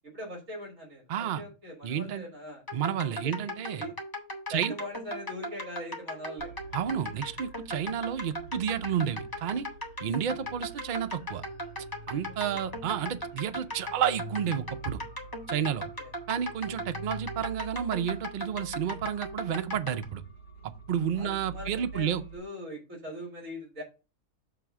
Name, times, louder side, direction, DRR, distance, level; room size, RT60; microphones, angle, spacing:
voice 1, 0.0-2.6 3.1-3.9 4.5-6.5 10.0-10.2 12.3-12.6 15.8-16.1 16.7-17.0 21.1-23.8, left 1 dB, 60° right, 2.4 m, -42 dB
voice 2, 1.1-1.4 1.8-2.2 2.7-3.9 4.5-4.7 6.7-9.7 10.0-11.4 12.1-15.0 15.5-15.9 16.3-20.2 20.6-22.2, right 8 dB, 80° right, 0.4 m, -31 dB
sound 1, 2.7-20.0, equal, 15° left, 1.1 m, -38 dB
sound 2, 6.4-22.4, right 3 dB, 80° left, 1.6 m, -47 dB
7.0 x 3.4 x 6.0 m
omnidirectional pair, 1.6 m